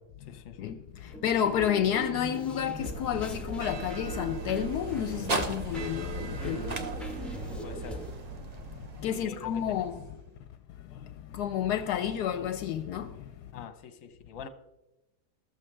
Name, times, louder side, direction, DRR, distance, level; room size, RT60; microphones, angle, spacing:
voice 1, 0.0-0.7 6.4-6.9 7.6-8.0 9.1-9.9 13.5-14.5, left 6 dB, 55° left, 1.2 m, -44 dB
voice 2, 0.6-6.6 7.3-7.5 9.0-10.0 10.9-13.3, left 9 dB, 75° left, 1.1 m, -30 dB
sound 1, 1.0-8.1, equal, ahead, 0.9 m, -41 dB
sound 2, 2.4-10.6, right 2 dB, 30° right, 0.9 m, -41 dB
sound 3, 2.8-9.3, right 3 dB, 55° right, 1.2 m, -40 dB
14.0 x 13.5 x 3.3 m
omnidirectional pair, 1.8 m